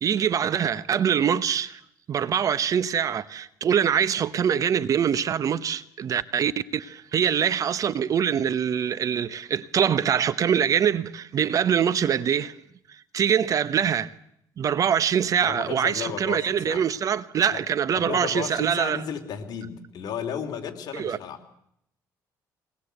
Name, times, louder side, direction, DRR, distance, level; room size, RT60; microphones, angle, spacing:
voice 1, 0.0-1.8 2.1-12.5 13.1-14.1 14.6-19.0 20.9-21.2, right 8 dB, 45° right, 0.9 m, -24 dB
voice 2, 15.5-16.8 17.5-17.6 17.9-21.4, left 8 dB, 60° left, 3.1 m, -34 dB
22.5 x 20.0 x 8.1 m
cardioid pair, 110°, 8 cm